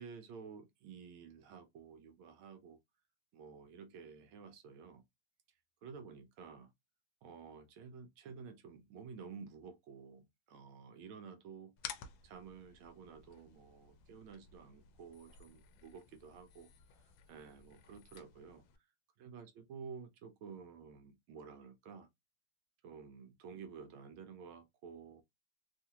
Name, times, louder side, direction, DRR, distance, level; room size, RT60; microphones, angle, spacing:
voice 1, 0.0-2.8 3.3-5.0 5.8-6.7 7.2-16.7 17.3-18.6 19.2-22.1 22.8-25.2, right 6 dB, 85° right, 1.5 m, -52 dB
sound 1, 11.8-18.8, left 8 dB, 75° left, 1.3 m, -54 dB
3.6 x 2.4 x 2.8 m
omnidirectional pair, 2.2 m